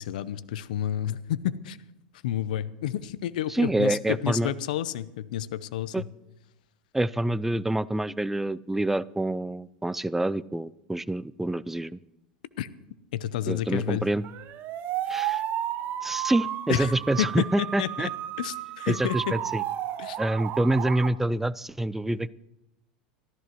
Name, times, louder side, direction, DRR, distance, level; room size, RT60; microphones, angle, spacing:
voice 1, 0.0-1.8 2.2-6.1 12.6-12.7 13.1-14.1 16.7-16.9 17.2-19.4 20.0-20.2, left 11 dB, 70° left, 17 dB, 0.7 m, -30 dB
voice 2, 3.5-4.5 5.9-6.0 6.9-12.0 13.5-14.2 15.1-15.4 16.0-18.1 18.9-19.6 20.2-22.3, right 1 dB, 5° right, 19 dB, 0.4 m, -27 dB
sound 1, 14.2-21.1, right 11 dB, 45° right, 1.1 m, -33 dB
24.0 x 14.5 x 3.0 m, 0.92 s
hypercardioid pair, 85°, 5 cm